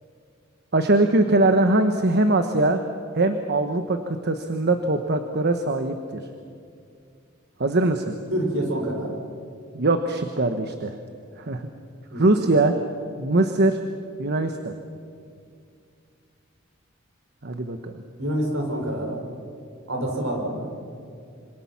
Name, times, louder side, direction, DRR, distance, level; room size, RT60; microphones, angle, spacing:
voice 1, 0.7-2.8 3.1-6.2 7.6-8.2 9.7-10.9 11.4-11.7 12.1-12.7 13.2-13.8 14.2-14.7 17.4-18.0, right 2 dB, 55° right, 7 dB, 1.2 m, -22 dB
voice 2, 8.3-9.1 12.1-12.3 18.2-19.2 19.9-20.7, right 1 dB, 70° right, 1 dB, 6.1 m, -27 dB
26.5 x 26.0 x 6.0 m, 2.3 s
head